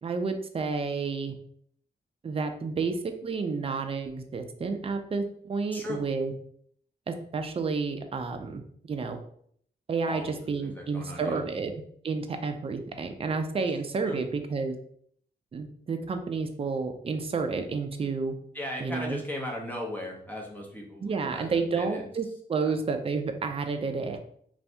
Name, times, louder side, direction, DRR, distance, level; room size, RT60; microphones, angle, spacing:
voice 1, 0.0-1.3 2.2-6.3 7.1-8.6 8.9-9.2 9.9-11.7 12.0-14.8 15.5-18.3 18.8-19.2 21.0-24.2, right 4 dB, 30° right, 6 dB, 0.4 m, -30 dB
voice 2, 10.6-11.4 14.0-14.2 18.5-22.0 22.7-22.8, left 1 dB, 10° left, -1 dB, 0.7 m, -37 dB
2.6 x 2.6 x 3.3 m, 0.64 s
wide cardioid pair, 130°, 18 cm